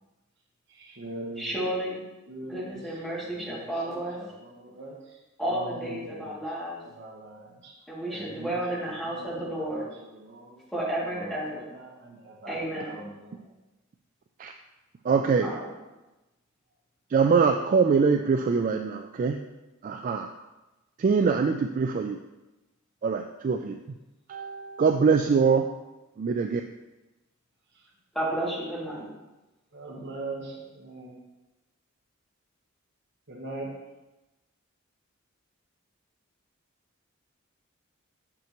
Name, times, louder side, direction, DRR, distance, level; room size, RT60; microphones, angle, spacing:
voice 1, 0.7-1.6 2.3-6.5 6.8-7.8 8.1-10.6 11.1-13.5 27.7-27.9 29.7-31.2 33.3-33.8, right 2 dB, 60° right, 0 dB, 1.1 m, -42 dB
voice 2, 1.4-2.0 2.5-4.2 5.4-6.8 7.9-9.8 10.7-11.6 12.4-13.0 15.4-15.7 28.1-29.1, right 1 dB, ahead, -8 dB, 2.4 m, -32 dB
voice 3, 15.0-15.6 17.1-19.4 19.8-20.3 21.0-22.2 23.0-23.8 24.3-25.7 26.2-26.6, right 5 dB, 40° right, 5 dB, 0.3 m, -23 dB
7.6 x 6.0 x 3.0 m, 1.0 s
head